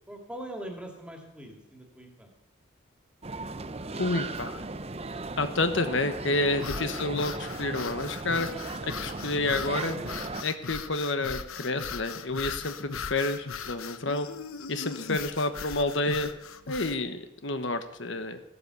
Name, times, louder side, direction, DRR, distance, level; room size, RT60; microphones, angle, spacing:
voice 1, 0.1-2.3 3.9-4.5 10.7-10.8, right 1 dB, 5° right, 2 dB, 2.5 m, -43 dB
sound 1, 3.2-10.4, right 3 dB, 30° right, 0.7 m, -37 dB
voice 2, 4.0-4.6 5.4-8.5 8.8-10.0 10.4-14.3 14.7-16.3 16.7-18.4, left 2 dB, 60° left, 8 dB, 1.2 m, -29 dB
sound 2, 6.6-17.0, left 5 dB, 85° left, 1.0 m, -39 dB
16.0 x 13.0 x 7.0 m, 0.85 s
head